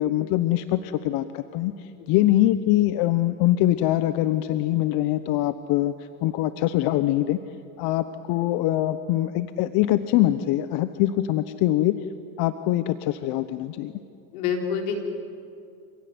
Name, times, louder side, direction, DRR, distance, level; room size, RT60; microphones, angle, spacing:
voice 1, 0.0-1.7 2.1-5.9 6.2-7.4 7.8-12.0 12.4-13.9, left 14 dB, 55° left, 12 dB, 0.9 m, -23 dB
voice 2, 8.3-8.6 14.3-15.0, left 6 dB, 75° left, 3 dB, 4.0 m, -28 dB
27.0 x 16.5 x 9.6 m, 2.6 s
supercardioid pair, 115°, 46 cm